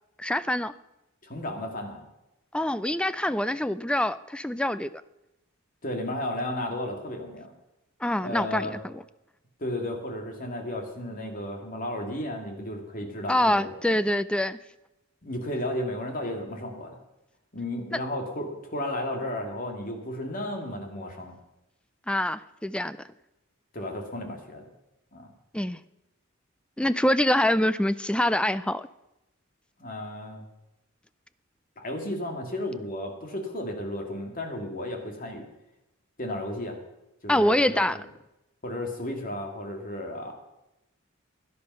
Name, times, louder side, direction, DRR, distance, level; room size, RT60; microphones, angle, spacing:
voice 1, 0.2-0.7 2.5-5.0 8.0-9.0 13.3-14.6 17.9-18.0 22.1-23.0 25.5-25.8 26.8-28.9 37.3-38.0, left 1 dB, 5° left, 15 dB, 0.4 m, -25 dB
voice 2, 1.2-2.1 5.8-7.5 8.2-8.8 9.6-13.8 15.2-17.0 17.5-21.4 23.7-24.7 25.1-25.3 29.8-30.5 31.8-35.5 36.2-36.8 37.2-37.8 38.6-40.3, left 1 dB, 45° left, 3 dB, 2.6 m, -33 dB
16.5 x 11.0 x 5.7 m, 0.92 s
head